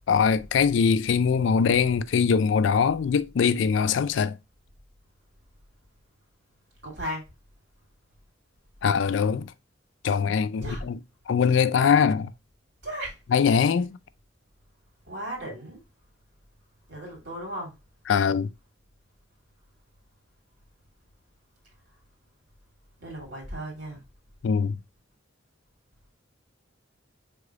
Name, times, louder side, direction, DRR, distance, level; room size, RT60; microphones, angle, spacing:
voice 1, 0.1-4.4 8.8-9.5 10.0-11.0 11.3-12.3 13.3-14.0 18.1-18.5 24.4-24.8, left 6 dB, 70° left, 0.4 m, -22 dB
voice 2, 6.8-7.3 10.6-10.8 12.8-13.2 15.1-15.8 16.9-17.7 23.0-24.0, equal, 65° right, 2.6 m, -35 dB
4.9 x 3.7 x 2.4 m
head